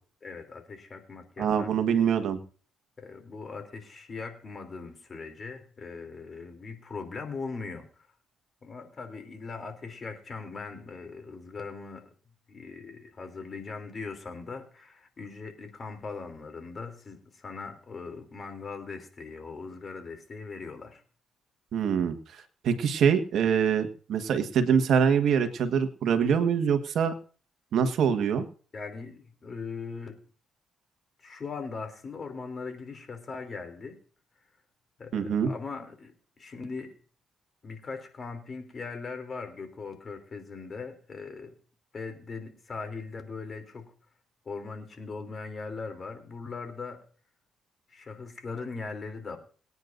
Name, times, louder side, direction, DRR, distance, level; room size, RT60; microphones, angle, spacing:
voice 1, 0.2-1.7 3.0-8.1 8.6-12.1 12.5-21.0 28.7-30.2 31.2-34.0 35.0-36.9 37.6-41.5 41.9-43.9 44.4-47.0 47.9-49.4, left 4 dB, 40° left, 6 dB, 3.2 m, -40 dB
voice 2, 1.4-2.4 21.7-22.2 22.6-27.1 27.7-28.4 35.1-35.5, right 7 dB, 70° right, 7 dB, 1.5 m, -24 dB
23.5 x 9.6 x 2.6 m, 0.41 s
cardioid pair, 90°, 0 cm